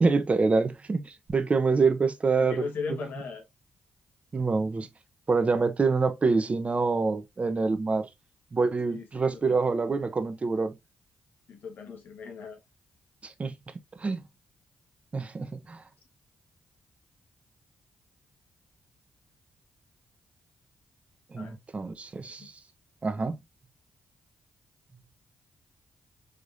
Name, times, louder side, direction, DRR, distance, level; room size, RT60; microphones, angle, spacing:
voice 1, 0.0-2.7 4.3-4.9 5.3-8.1 8.5-10.8 13.2-13.5 14.0-14.2 15.1-15.8 21.3-22.5 23.0-23.4, right 4 dB, 40° right, 1.0 m, -26 dB
voice 2, 2.4-3.4 8.9-9.6 11.5-12.6 21.4-21.6 22.4-22.5, left 5 dB, 65° left, 1.7 m, -38 dB
5.1 x 3.6 x 2.7 m
supercardioid pair, 45°, 3 cm